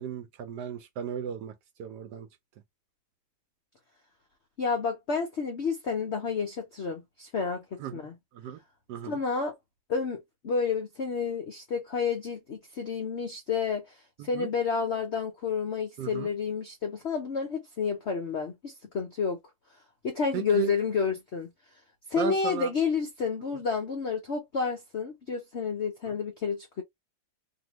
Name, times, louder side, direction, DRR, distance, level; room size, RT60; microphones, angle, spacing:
voice 1, 0.0-1.5 1.8-2.3 7.8-8.1 8.3-8.6 8.9-9.2 14.2-14.5 16.0-16.3 20.3-20.7 22.2-22.7 26.1-26.2, right 7 dB, 70° right, 1.0 m, -35 dB
voice 2, 4.6-8.2 9.0-9.5 9.9-10.2 10.4-13.8 14.2-19.4 20.0-21.5 22.1-26.8, left 5 dB, 70° left, 0.6 m, -30 dB
2.7 x 2.7 x 2.9 m
omnidirectional pair, 2.1 m